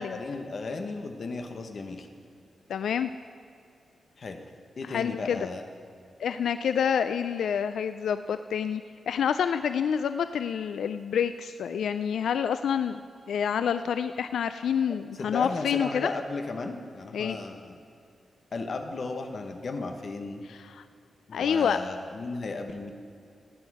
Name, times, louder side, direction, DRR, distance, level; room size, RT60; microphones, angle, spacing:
voice 1, 0.0-2.1 4.2-4.4 4.8-5.6 15.1-17.8 18.5-20.4 21.3-22.9, left 3 dB, 45° left, 5 dB, 1.1 m, -35 dB
voice 2, 2.7-3.1 4.9-5.5 6.2-13.0 13.3-16.1 17.1-17.4 20.5-20.8 21.3-21.8, left 7 dB, 90° left, 11 dB, 0.3 m, -28 dB
17.0 x 9.6 x 4.8 m, 2.5 s
wide cardioid pair, 160°, 0 cm